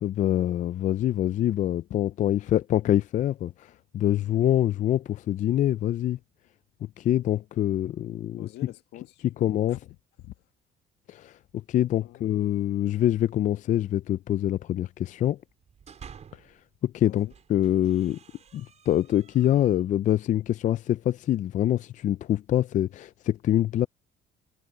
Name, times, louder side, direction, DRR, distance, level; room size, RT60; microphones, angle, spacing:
voice 1, 0.0-3.7 3.9-6.2 7.0-8.5 9.4-9.8 11.1-11.3 11.7-15.4 16.8-18.2 18.5-23.9, left 12 dB, 45° left, 0.4 m, -25 dB
voice 2, 8.3-10.3 12.0-12.3 17.0-17.3, left 16 dB, 85° left, 1.7 m, -47 dB
sound 1, 15.5-16.6 17.1-19.9, right 7 dB, 40° right, 5.4 m, -51 dB
cardioid pair, 110°, 17 cm